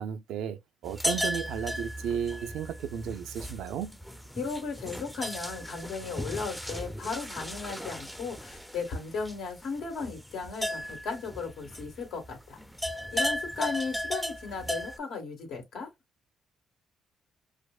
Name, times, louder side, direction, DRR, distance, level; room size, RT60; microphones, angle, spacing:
voice 1, 0.0-3.9, right 8 dB, 85° right, 0.5 m, -34 dB
sound 1, 0.9-12.3 12.6-15.0, equal, ahead, 0.5 m, -36 dB
voice 2, 4.3-12.6 13.1-15.9, left 4 dB, 75° left, 1.7 m, -36 dB
4.9 x 2.1 x 2.3 m
cardioid pair, 90°, 0 cm